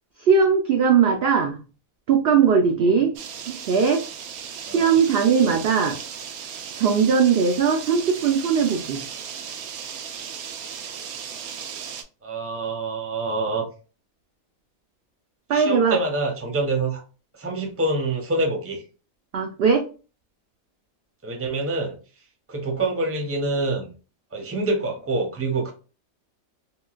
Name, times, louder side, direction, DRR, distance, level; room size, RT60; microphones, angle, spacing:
voice 1, 0.2-1.6 2.1-3.1 3.5-4.0 4.7-6.0 6.8-9.0 15.5-16.0 19.3-19.9, right 6 dB, 65° right, 3 dB, 0.6 m, -19 dB
sound 1, 3.2-12.0, right 7 dB, 80° right, 1.0 m, -36 dB
voice 2, 4.7-5.0 5.5-5.6 12.2-13.7 15.5-17.0 17.3-18.8 21.2-22.0 22.5-23.9 24.3-25.7, right 2 dB, 15° right, 2 dB, 0.6 m, -26 dB
3.7 x 2.3 x 2.4 m, 0.34 s
omnidirectional pair, 1.5 m